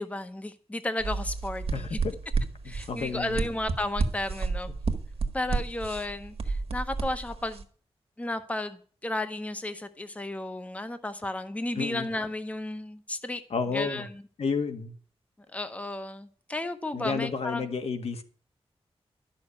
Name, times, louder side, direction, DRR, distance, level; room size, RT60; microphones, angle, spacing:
voice 1, 0.0-2.0 2.6-4.7 5.3-7.6 8.2-13.4 13.7-14.2 15.5-17.7, left 2 dB, 15° left, 9 dB, 0.9 m, -33 dB
sound 1, 1.0-7.6, right 4 dB, 70° right, 1.7 m, -31 dB
voice 2, 1.7-2.1 2.6-3.4 4.7-4.8 11.7-12.1 13.5-14.0 14.4-14.9 16.9-18.2, left 5 dB, 80° left, 7 dB, 1.7 m, -31 dB
13.0 x 6.3 x 9.7 m, 0.43 s
wide cardioid pair, 165°, 10 cm